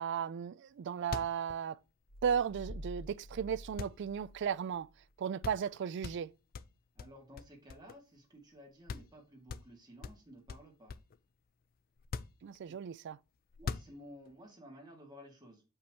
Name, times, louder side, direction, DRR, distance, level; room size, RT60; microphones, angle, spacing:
voice 1, 0.0-1.8 2.2-4.9 5.2-6.3 12.4-13.2, right 7 dB, 60° right, 0.3 m, -35 dB
sound 1, 0.7-0.8 1.0-3.2 3.8-4.8 5.1-5.2 5.4-5.7 6.0-8.2 8.5-8.6 8.9-9.2 9.5-11.2 12.0-12.9 13.5-14.3, left 5 dB, 45° left, 0.4 m, -44 dB
sound 2, 2.1-5.1, equal, 90° left, 1.8 m, -49 dB
voice 2, 7.0-10.9 12.6-12.8 13.6-15.6, equal, 20° right, 2.1 m, -54 dB
6.7 x 5.4 x 2.9 m
head